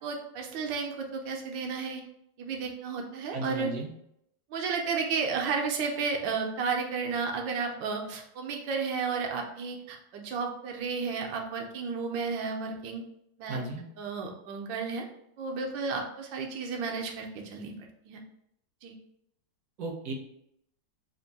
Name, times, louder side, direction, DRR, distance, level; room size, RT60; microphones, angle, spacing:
voice 1, 0.0-2.0 2.4-3.7 4.5-13.0 13.4-13.6 14.0-15.1 15.4-17.8 18.0-18.2 18.8-18.9, right 5 dB, 80° right, 2 dB, 1.4 m, -32 dB
voice 2, 3.3-3.9 13.5-13.9 19.8-20.1, right 2 dB, 60° right, 1 dB, 1.1 m, -35 dB
3.5 x 2.6 x 4.0 m, 0.75 s
omnidirectional pair, 2.0 m